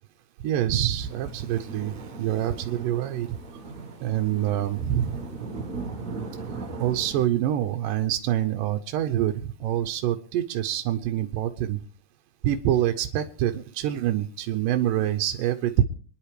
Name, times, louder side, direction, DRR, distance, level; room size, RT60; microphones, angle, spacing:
voice 1, 0.4-3.4 4.0-5.2 6.8-11.8 12.4-15.8, right 11 dB, 75° right, 4 dB, 2.4 m, -26 dB
sound 1, 0.9-7.3, right 3 dB, 50° right, 0.9 m, -38 dB
26.0 x 10.5 x 3.3 m, 0.41 s
omnidirectional pair, 4.1 m